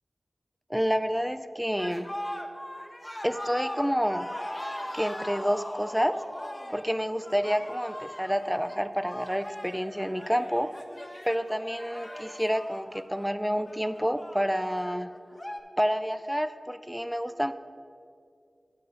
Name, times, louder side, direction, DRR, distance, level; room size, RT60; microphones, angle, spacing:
voice 1, 0.7-2.1 3.2-4.3 4.9-6.2 6.7-10.7 11.3-15.1 15.8-17.5, equal, 5° right, 12 dB, 0.4 m, -29 dB
sound 1, 1.8-15.6, left 1 dB, 20° left, 0.8 m, -40 dB
8.0 x 7.0 x 4.9 m, 2.3 s
cardioid pair, 45°, 0 cm